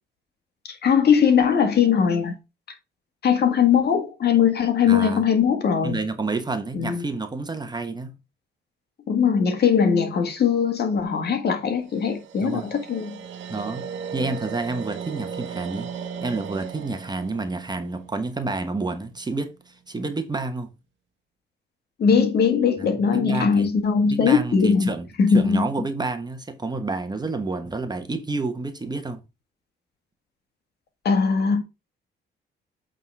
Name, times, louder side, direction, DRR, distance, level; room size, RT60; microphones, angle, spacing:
voice 1, 0.7-2.4 3.2-6.0 6.7-7.1 9.1-13.2 22.0-24.9 25.2-25.9 31.0-31.6, left 6 dB, 55° left, 1.8 m, -20 dB
voice 2, 4.9-5.2 5.8-8.1 12.4-12.7 13.5-13.8 14.1-20.7 22.8-23.7 24.1-25.1 25.3-29.2, right 3 dB, 20° right, 1.2 m, -29 dB
sound 1, 11.8-18.9, right 7 dB, 75° right, 1.2 m, -37 dB
8.2 x 3.9 x 4.7 m
cardioid pair, 90°, 20 cm